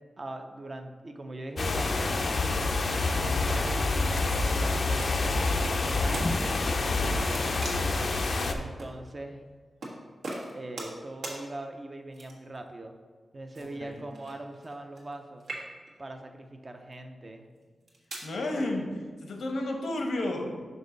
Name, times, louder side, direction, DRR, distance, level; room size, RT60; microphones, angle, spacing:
voice 1, 0.2-2.3 3.0-6.4 8.5-9.4 10.5-13.0 13.3-15.5 16.0-17.4, right 2 dB, 30° right, 5 dB, 0.5 m, -41 dB
sound 1, 1.6-8.5, left 3 dB, 50° left, 0.5 m, -27 dB
sound 2, 5.0-5.8 6.1-6.3 6.7-8.0 8.8-8.9 9.8-10.0 10.2-11.0 11.2-11.4 12.1-12.6 13.5-15.1 15.4-16.0 16.7-16.9 17.6-18.3, right 2 dB, 85° right, 1.4 m, -40 dB
voice 2, 7.0-7.3 13.6-14.1 18.2-20.5, left 1 dB, 85° left, 2 dB, 1.0 m, -32 dB
5.9 x 5.4 x 3.9 m, 1.5 s
wide cardioid pair, 155°, 0 cm